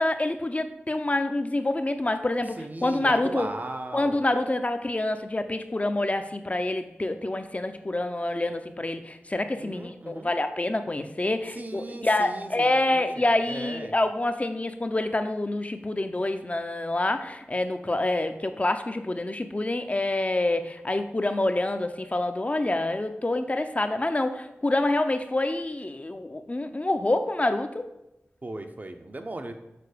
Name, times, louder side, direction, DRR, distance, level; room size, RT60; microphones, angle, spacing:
voice 1, 0.0-3.5 3.9-27.9, left 2 dB, 30° left, 8 dB, 0.6 m, -27 dB
voice 2, 2.6-4.2 9.6-10.3 11.5-13.9 28.4-29.5, right 2 dB, 40° right, 6 dB, 0.7 m, -37 dB
6.8 x 4.4 x 4.9 m, 0.91 s
wide cardioid pair, 60°, 4 cm